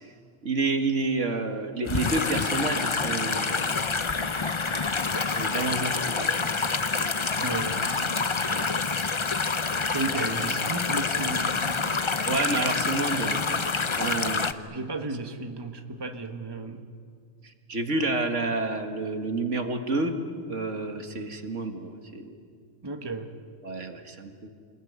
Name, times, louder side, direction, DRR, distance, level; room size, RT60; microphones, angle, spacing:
voice 1, 0.4-3.7 5.3-6.3 7.0-7.1 8.4-8.7 12.3-13.5 14.0-14.6 17.4-20.2 20.5-22.3 23.6-24.5, right 3 dB, 70° right, 5 dB, 2.1 m, -29 dB
sound 1, 1.8-14.5, left 4 dB, 30° left, 0.7 m, -27 dB
voice 2, 7.4-8.2 9.9-12.1 14.7-16.9 22.8-23.3, right 3 dB, 20° right, 5 dB, 1.4 m, -34 dB
28.0 x 20.5 x 9.5 m, 2.1 s
omnidirectional pair, 1.3 m